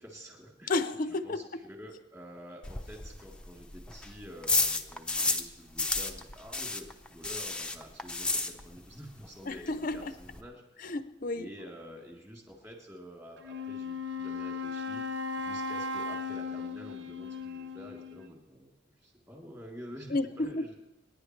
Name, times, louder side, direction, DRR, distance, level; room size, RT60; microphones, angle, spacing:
voice 1, 0.0-0.7 1.2-10.8 11.3-15.0 15.3-20.8, equal, 15° right, 3.3 m, -48 dB
voice 2, 0.7-1.5 9.5-10.1 10.8-11.5 20.1-20.6, left 2 dB, 45° left, 0.6 m, -32 dB
sound 1, 2.6-5.5 5.8-9.0 9.2-9.3 9.7-9.8 9.9-10.4, left 3 dB, 5° left, 0.7 m, -31 dB
Wind instrument woodwind instrument, 13.4-18.3, left 3 dB, 60° right, 0.9 m, -37 dB
28.5 x 11.0 x 3.3 m
head